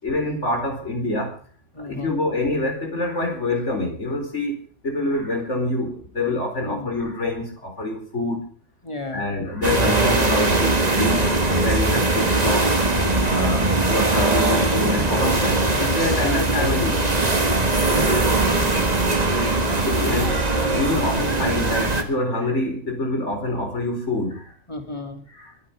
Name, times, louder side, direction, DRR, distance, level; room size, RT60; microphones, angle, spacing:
voice 1, 0.0-1.3 1.8-8.4 9.1-17.0 19.3-24.4 25.4-25.5, left 2 dB, 65° left, 3 dB, 4.7 m, -26 dB
voice 2, 1.7-2.2 6.6-6.9 8.8-9.2 16.1-16.7 17.7-18.4 24.7-25.2, left 2 dB, 20° left, 5 dB, 2.7 m, -33 dB
sound 1, 9.6-22.0, right 2 dB, 30° right, 1.9 m, -20 dB
sound 2, 10.9-21.8, right 7 dB, 80° right, 1.7 m, -36 dB
23.5 x 10.5 x 5.2 m, 0.43 s
omnidirectional pair, 1.3 m